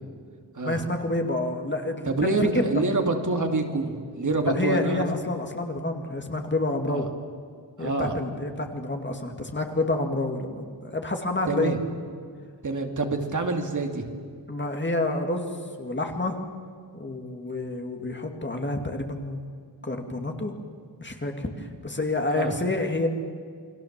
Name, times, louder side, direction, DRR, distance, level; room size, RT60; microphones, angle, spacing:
voice 1, 0.6-2.3 2.5-2.7 4.6-7.1 7.8-11.7 14.5-15.5 15.8-16.4 16.9-19.4 19.8-20.5 21.0-23.1, left 2 dB, 25° left, 4 dB, 2.3 m, -28 dB
voice 2, 2.0-5.0 6.9-7.0 7.8-8.1 11.5-11.8 12.6-14.1 22.3-22.6, right 3 dB, 45° right, 3 dB, 2.5 m, -26 dB
29.0 x 23.0 x 7.4 m, 2.1 s
wide cardioid pair, 165°, 43 cm